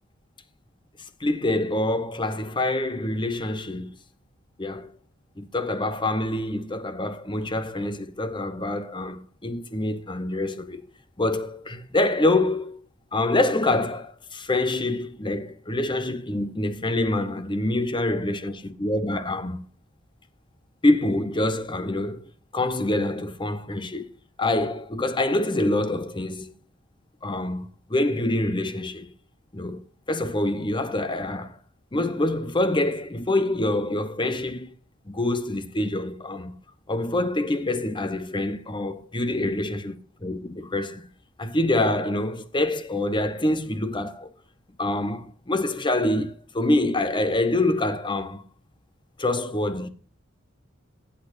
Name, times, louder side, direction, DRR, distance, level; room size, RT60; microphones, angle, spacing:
voice 1, 1.2-4.0 4.6-4.9 5.4-10.8 11.2-12.8 13.1-19.7 20.8-24.1 24.4-26.5 27.2-29.1 29.5-31.6 31.9-34.7 35.1-36.5 36.9-41.0 41.4-44.3 44.8-48.5 49.2-49.9, left 2 dB, 25° left, 1.0 m, -26 dB
15.0 x 8.5 x 2.6 m
head